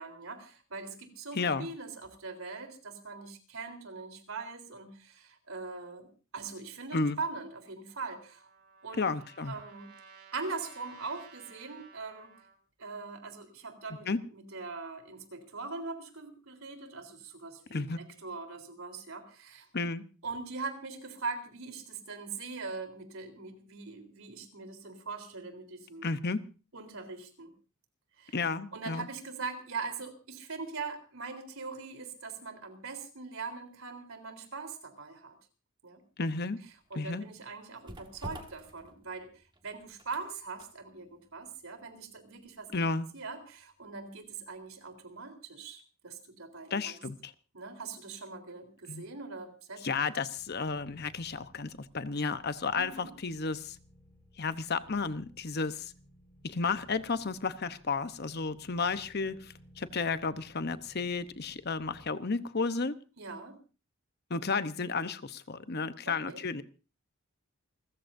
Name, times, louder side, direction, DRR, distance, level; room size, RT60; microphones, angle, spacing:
voice 1, 0.0-8.5 8.8-9.1 9.4-9.9 10.3-12.3 12.8-19.7 20.2-26.1 26.7-27.5 28.2-28.4 28.7-35.3 35.8-36.0 36.9-39.3 39.6-42.8 43.1-47.0 47.5-49.9 52.8-53.1 63.2-63.6 66.1-66.4, right 4 dB, 75° right, 6 dB, 3.8 m, -41 dB
voice 2, 1.3-1.7 6.9-7.2 9.0-9.5 14.1-14.2 17.7-18.0 19.7-20.0 26.0-26.4 28.3-29.1 36.2-36.6 36.9-37.2 42.7-43.1 46.7-47.3 48.9-49.0 49.8-53.8 54.4-55.9 56.4-62.9 64.3-66.6, left 4 dB, 50° left, 11 dB, 0.9 m, -32 dB
Trumpet, 7.9-12.6, right 6 dB, 50° right, 3.8 m, -56 dB
sound 1, 36.6-44.6 44.9-45.1, right 1 dB, 20° right, 1.8 m, -51 dB
sound 2, 50.4-62.1, left 1 dB, 10° left, 4.7 m, -59 dB
29.0 x 14.5 x 2.7 m, 0.34 s
head